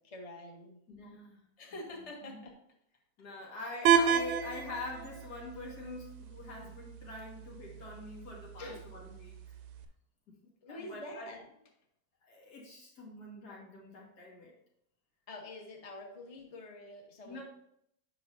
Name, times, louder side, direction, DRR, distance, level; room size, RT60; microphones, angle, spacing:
voice 1, 0.0-0.8 1.6-2.5 8.6-8.8 10.6-11.5 15.3-17.4, left 1 dB, 25° left, 1 dB, 0.9 m, -46 dB
voice 2, 0.9-1.4 1.9-2.4 3.2-9.4 10.7-11.3 12.2-14.5 17.3-17.4, left 2 dB, 90° left, -2 dB, 2.2 m, -45 dB
sound 1, 3.9-9.9, right 7 dB, 80° right, 1.1 m, -33 dB
7.9 x 5.6 x 2.6 m, 0.75 s
omnidirectional pair, 1.7 m